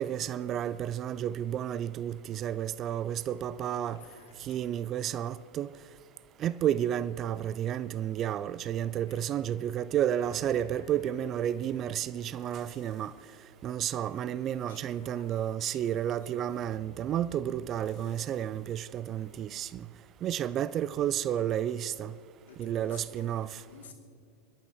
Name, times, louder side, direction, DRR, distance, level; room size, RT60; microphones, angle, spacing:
voice 1, 0.0-4.0 4.4-5.7 6.4-13.1 13.6-19.9 20.2-22.1 22.6-23.6, right 10 dB, 30° right, 0.3 m, -31 dB
voice 2, 3.4-4.6 9.1-9.4 14.7-16.4 22.4-23.9, left 3 dB, 60° left, 2.6 m, -52 dB
sound 1, 10.1-15.7, left 2 dB, 75° left, 2.1 m, -58 dB
sound 2, 10.2-11.6 12.3-13.3 13.8-20.5 20.9-21.0, left 7 dB, 40° left, 2.3 m, -59 dB
27.0 x 12.0 x 3.6 m
figure-of-eight pair, 90°, 0 cm